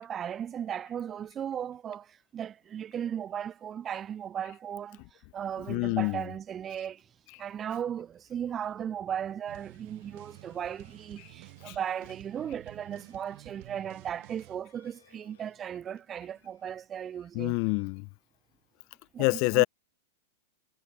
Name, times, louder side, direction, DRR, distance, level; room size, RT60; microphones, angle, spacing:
voice 1, 0.0-5.0 5.3-7.1 7.4-17.6 19.1-19.7, right 9 dB, 25° right, 0.7 m, -36 dB
voice 2, 5.6-6.3 11.7-11.8 17.3-18.0 19.2-19.7, left 36 dB, 45° left, 0.6 m, -27 dB
sound 1, 9.5-14.6, right 31 dB, 50° right, 4.4 m, -51 dB
sound 2, 9.6-18.7, left 9 dB, 70° left, 6.3 m, -68 dB
hypercardioid pair, 100°, 0 cm